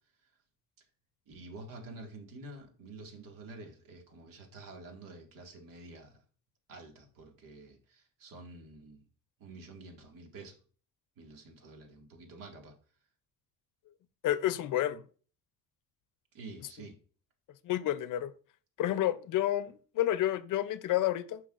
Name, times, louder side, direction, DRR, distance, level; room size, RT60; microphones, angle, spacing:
voice 1, 1.3-6.2 6.7-9.0 9.4-10.6 11.2-12.7 16.3-17.0, right 2 dB, 70° right, 2.0 m, -49 dB
voice 2, 14.2-15.0 17.6-18.3 18.8-21.4, left 13 dB, 65° left, 0.6 m, -30 dB
9.9 x 6.0 x 2.5 m
cardioid pair, 145°, 34 cm